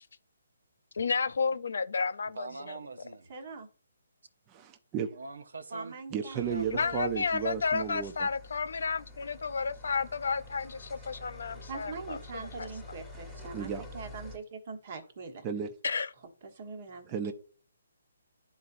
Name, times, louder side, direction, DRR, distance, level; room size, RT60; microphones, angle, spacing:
voice 1, 1.0-2.8 6.7-12.2 12.6-12.7 15.8-16.1, left 5 dB, 70° left, 0.6 m, -31 dB
voice 2, 2.3-3.3 5.1-6.7 13.3-13.4, right 3 dB, 85° right, 0.8 m, -43 dB
voice 3, 3.3-3.7 5.7-7.0 11.7-15.4 16.4-17.3, right 4 dB, 40° right, 1.3 m, -43 dB
voice 4, 4.5-5.1 6.1-8.3 13.5-13.8 15.4-15.7 17.1-17.3, right 7 dB, 20° right, 0.5 m, -34 dB
sound 1, 6.4-14.4, left 2 dB, ahead, 1.4 m, -48 dB
11.5 x 4.1 x 2.6 m
hypercardioid pair, 165°, 0 cm